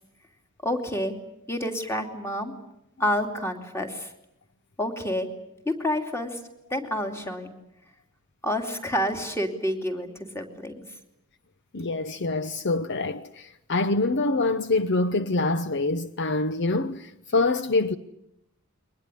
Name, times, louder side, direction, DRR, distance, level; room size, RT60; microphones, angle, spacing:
voice 1, 0.6-1.1 1.5-2.5 3.0-4.1 4.8-5.3 5.6-6.4 6.7-7.5 8.4-10.7, left 1 dB, 10° left, 2.9 m, -28 dB
voice 2, 11.7-18.0, left 2 dB, 55° left, 0.9 m, -25 dB
23.0 x 19.5 x 9.9 m
head